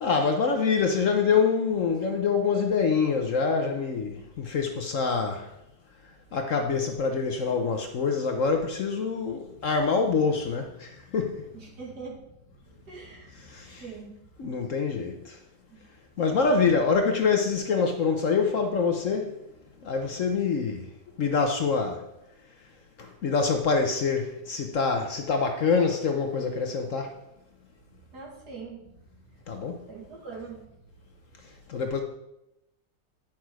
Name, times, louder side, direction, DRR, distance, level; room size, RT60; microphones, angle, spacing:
voice 1, 0.0-5.5 6.3-11.5 13.4-13.9 14.4-15.4 16.2-19.4 19.8-20.9 21.2-22.1 23.0-27.2 29.5-29.8 31.7-32.0, left 5 dB, 55° left, 1.0 m, -25 dB
voice 2, 11.5-12.4 12.9-14.1 15.7-15.8 16.2-16.5 20.1-20.3 28.1-28.8 29.9-30.7, right 4 dB, 65° right, 2.5 m, -42 dB
10.5 x 6.0 x 4.8 m
omnidirectional pair, 1.9 m